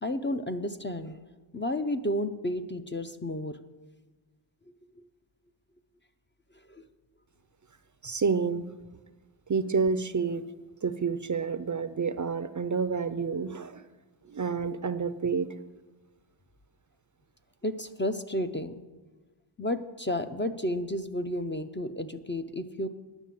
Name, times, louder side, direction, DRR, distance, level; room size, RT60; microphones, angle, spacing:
voice 1, 0.0-1.2 1.5-3.6 5.0-5.1 6.7-6.8 17.6-18.8 19.6-22.9, left 1 dB, 25° left, 8 dB, 0.5 m, -32 dB
voice 2, 8.0-8.7 9.5-10.4 10.8-13.8 14.3-15.5, right 5 dB, 40° right, 12 dB, 0.5 m, -29 dB
10.0 x 6.9 x 7.5 m, 1.2 s
wide cardioid pair, 75°, 48 cm